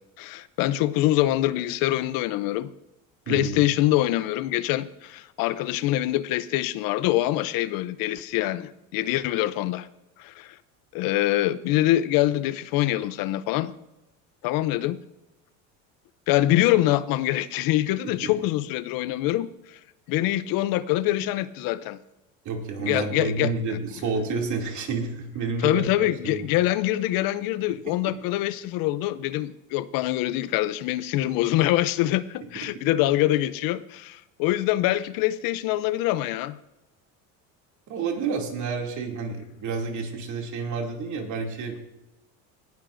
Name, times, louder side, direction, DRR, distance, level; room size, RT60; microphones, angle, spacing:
voice 1, 0.2-2.7 3.3-9.9 10.2-10.6 10.9-13.7 14.4-15.0 16.3-19.8 20.1-22.0 22.8-23.8 25.6-36.6, left 15 dB, 60° left, 0.6 m, -24 dB
voice 2, 3.3-3.6 18.2-18.3 22.4-25.8 26.2-26.5 28.0-28.1 37.9-41.8, right 4 dB, 50° right, 2.7 m, -29 dB
18.5 x 12.5 x 2.6 m
supercardioid pair, 115°, 39 cm